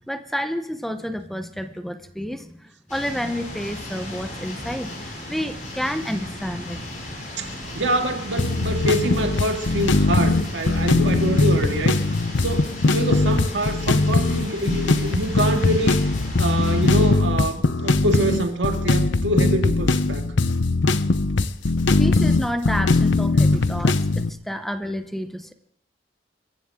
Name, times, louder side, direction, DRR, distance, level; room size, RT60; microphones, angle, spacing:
voice 1, 0.1-6.8 22.0-25.5, equal, ahead, 0.8 m, -30 dB
sound 1, 2.9-17.1, left 1 dB, 45° left, 7.2 m, -36 dB
voice 2, 7.4-12.0 12.4-16.0 16.4-20.3 23.5-23.6, right 1 dB, 75° right, 2.0 m, -25 dB
sound 2, 8.4-24.3, left 3 dB, 85° left, 0.8 m, -20 dB
26.5 x 15.0 x 3.7 m
head